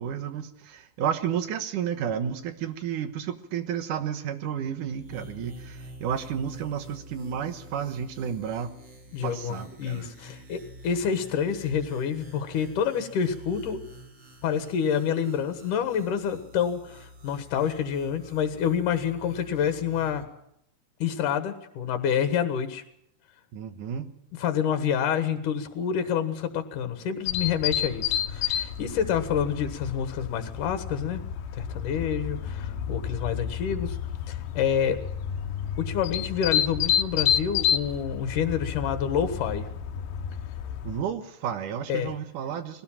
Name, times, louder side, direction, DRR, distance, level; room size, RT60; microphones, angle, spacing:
voice 1, 0.0-8.7 9.2-10.1 23.5-24.1 40.8-42.8, right 8 dB, 75° right, 9 dB, 2.8 m, -32 dB
sound 1, 4.9-20.2, equal, 35° right, 3.0 m, -47 dB
voice 2, 9.1-13.8 14.4-20.2 21.0-22.8 24.3-31.2 31.5-34.0 34.3-35.0 35.8-39.7 41.9-42.1, left 8 dB, 75° left, 8 dB, 3.0 m, -28 dB
sound 2, 27.3-41.0, left 9 dB, 90° left, 2.7 m, -30 dB
20.5 x 17.5 x 7.3 m, 0.75 s
omnidirectional pair, 3.8 m